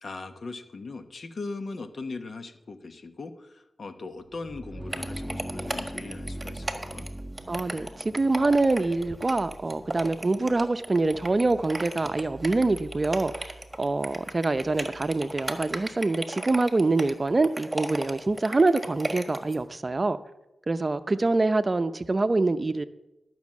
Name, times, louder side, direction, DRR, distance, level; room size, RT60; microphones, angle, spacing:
voice 1, 0.0-7.1, left 3 dB, 60° left, 1.1 m, -39 dB
sound 1, 4.2-15.9, right 1 dB, ahead, 1.5 m, -42 dB
sound 2, 4.9-19.5, right 1 dB, 20° right, 1.5 m, -35 dB
voice 2, 7.5-13.5 13.8-20.2 20.7-22.9, right 3 dB, 40° right, 0.6 m, -25 dB
12.5 x 6.1 x 7.3 m
cardioid pair, 55°, 0 cm